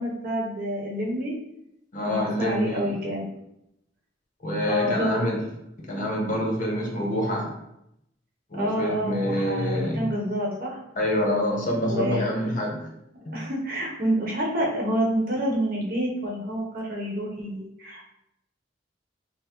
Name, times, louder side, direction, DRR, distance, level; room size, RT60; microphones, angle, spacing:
voice 1, 0.0-1.3 2.0-3.3 4.6-5.3 8.5-10.8 11.8-12.2 13.3-18.0, equal, 50° right, -2 dB, 0.9 m, -28 dB
voice 2, 1.9-3.0 4.4-5.5 5.8-7.5 8.5-10.1 10.9-12.9 13.2-13.4, left 1 dB, 45° left, -1 dB, 0.8 m, -26 dB
5.3 x 2.0 x 2.9 m, 0.81 s
head